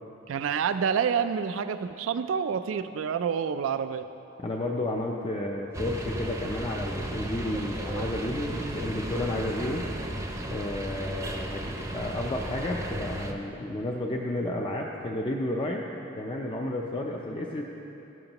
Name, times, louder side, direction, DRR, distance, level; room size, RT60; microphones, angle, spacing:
voice 1, 0.3-4.1, right 7 dB, 80° right, 11 dB, 0.3 m, -28 dB
voice 2, 4.4-9.8 10.5-15.8 16.1-17.6, left 1 dB, 25° left, 0 dB, 0.5 m, -32 dB
sound 1, 5.7-13.3, right 1 dB, 15° right, 0.7 m, -34 dB
14.0 x 11.0 x 2.9 m, 2.9 s
head